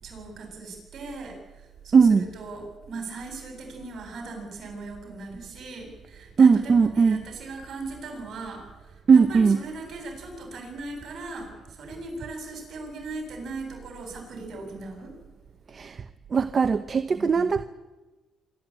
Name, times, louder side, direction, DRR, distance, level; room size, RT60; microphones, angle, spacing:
voice 1, 0.0-15.1 17.1-17.5, right 3 dB, 60° right, 3 dB, 7.5 m, -38 dB
voice 2, 1.9-2.3 6.4-7.2 9.1-9.6 15.7-16.0 16.3-17.6, right 5 dB, 40° right, 11 dB, 0.8 m, -19 dB
25.0 x 13.0 x 9.0 m, 1.2 s
cardioid pair, 90°, 0 cm